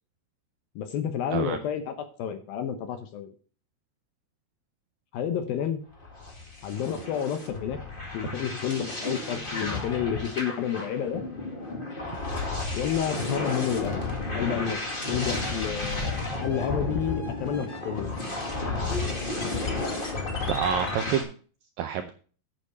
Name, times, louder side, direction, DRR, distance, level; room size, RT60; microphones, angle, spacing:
voice 1, 0.8-3.3 5.1-5.8 6.6-7.8 8.1-11.2 12.7-14.0 14.3-14.8 15.1-18.2, left 8 dB, 75° left, 8 dB, 2.4 m, -30 dB
voice 2, 1.3-1.6 20.4-21.3 21.8-22.1, right 9 dB, 85° right, 7 dB, 2.0 m, -28 dB
sound 1, 6.0-21.2, left 3 dB, 30° left, 0.9 m, -32 dB
8.8 x 8.4 x 5.4 m, 0.40 s
omnidirectional pair, 4.9 m